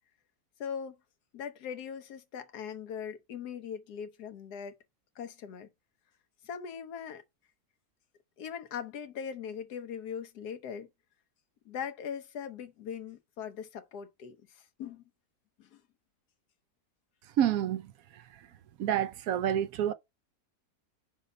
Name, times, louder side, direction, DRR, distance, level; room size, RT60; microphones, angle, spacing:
voice 1, 0.6-1.0 1.3-4.7 5.2-5.7 6.4-7.2 8.4-10.9 11.6-15.0 15.6-15.8, left 7 dB, 85° left, 1.4 m, -40 dB
voice 2, 17.4-17.9 18.8-19.9, right 10 dB, 70° right, 1.0 m, -28 dB
5.4 x 4.0 x 5.3 m
omnidirectional pair, 1.7 m